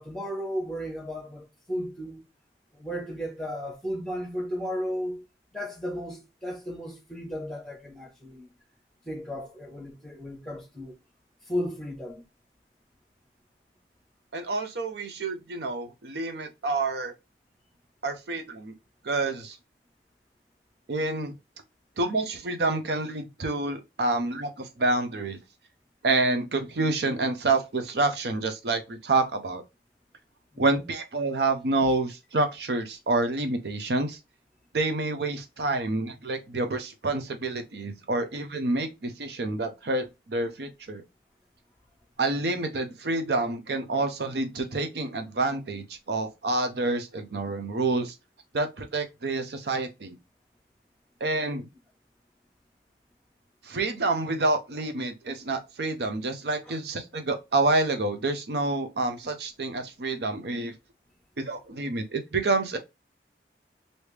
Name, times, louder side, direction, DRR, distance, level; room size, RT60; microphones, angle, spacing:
voice 1, 0.0-2.2 2.7-5.2 5.5-8.5 9.0-11.0 11.5-12.2 30.5-30.8 56.6-56.7, equal, 5° left, 1.1 m, -34 dB
voice 2, 14.3-17.1 18.0-18.7 19.0-19.6 20.9-21.3 22.0-25.4 26.0-29.6 30.6-34.2 34.7-41.0 42.2-48.1 48.5-50.1 51.2-51.7 53.6-60.7 61.4-62.8, right 2 dB, 70° right, 0.6 m, -28 dB
3.2 x 2.7 x 3.2 m
head